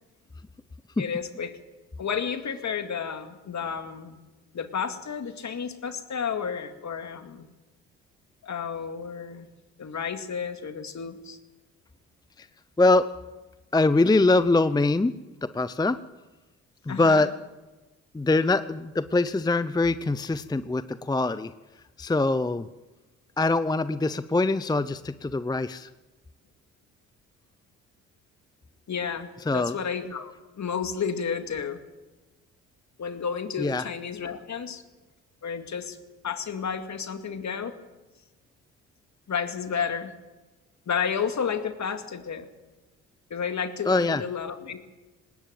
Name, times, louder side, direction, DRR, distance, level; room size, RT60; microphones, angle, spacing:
voice 1, 1.0-1.6 2.0-4.2 4.5-7.5 8.4-9.5 9.8-11.4 16.9-17.3 28.9-31.8 33.0-34.8 35.4-36.0 36.2-37.7 39.3-40.1 40.9-42.5 43.3-44.8, left 6 dB, 45° left, 8 dB, 2.3 m, -31 dB
voice 2, 13.7-15.1 15.4-16.0 16.9-17.3 18.1-21.5 22.0-22.7 23.4-25.9 29.5-29.7 33.6-33.9 43.9-44.2, left 2 dB, 10° left, 14 dB, 0.7 m, -23 dB
19.5 x 18.0 x 7.7 m, 1.2 s
hypercardioid pair, 55°, 38 cm